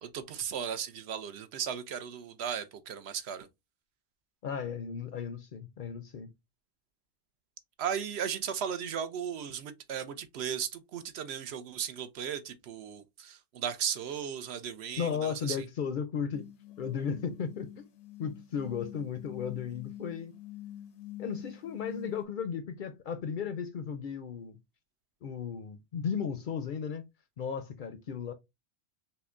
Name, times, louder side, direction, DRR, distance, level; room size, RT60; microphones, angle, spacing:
voice 1, 0.0-3.5 7.8-15.6, right 8 dB, 75° right, 0.8 m, -36 dB
voice 2, 4.4-6.3 15.0-16.5 16.8-17.9 18.2-20.3 21.2-24.6 25.2-27.0 27.4-28.3, left 7 dB, 60° left, 0.6 m, -35 dB
sound 1, 16.3-22.2, left 12 dB, 85° left, 0.9 m, -46 dB
5.6 x 2.2 x 2.4 m
omnidirectional pair, 1.1 m